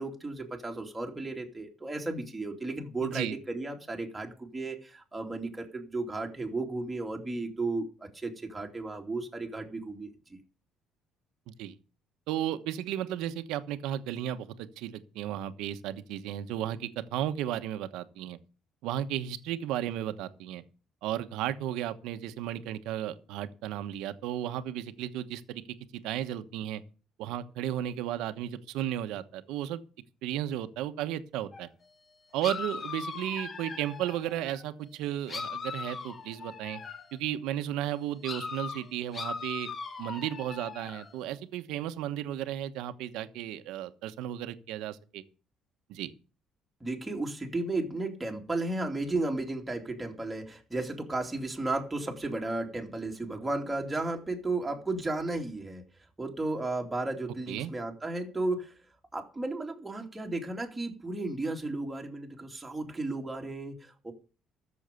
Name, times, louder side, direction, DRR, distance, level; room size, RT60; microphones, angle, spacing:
voice 1, 0.0-10.1 46.8-55.8 56.2-58.8 59.1-64.1, right 2 dB, 10° right, 2.7 m, -34 dB
voice 2, 3.0-3.4 11.5-11.7 12.3-18.4 18.8-20.6 21.0-25.6 26.0-26.8 27.2-29.8 30.2-31.7 32.3-36.8 37.1-39.7 40.0-45.2 45.9-46.1 57.5-57.7, right 12 dB, 85° right, 1.1 m, -34 dB
sound 1, 31.5-31.7 32.4-34.6 35.3-37.2 38.2-41.1, left 5 dB, 30° left, 1.0 m, -39 dB
14.0 x 7.1 x 6.9 m
cardioid pair, 135°, 0 cm